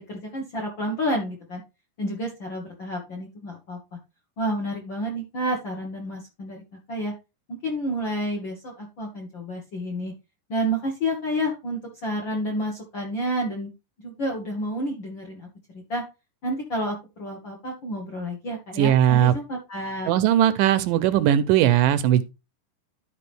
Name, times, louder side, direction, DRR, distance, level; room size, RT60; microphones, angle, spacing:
voice 1, 0.0-1.6 2.0-3.8 4.4-6.6 6.9-7.1 7.6-10.1 10.5-13.7 14.0-15.5 15.7-16.0 16.4-20.1, equal, 55° left, 1.3 m, -30 dB
voice 2, 18.8-19.4 20.1-22.2, right 11 dB, 80° right, 2.2 m, -19 dB
12.0 x 4.9 x 3.4 m
omnidirectional pair, 4.0 m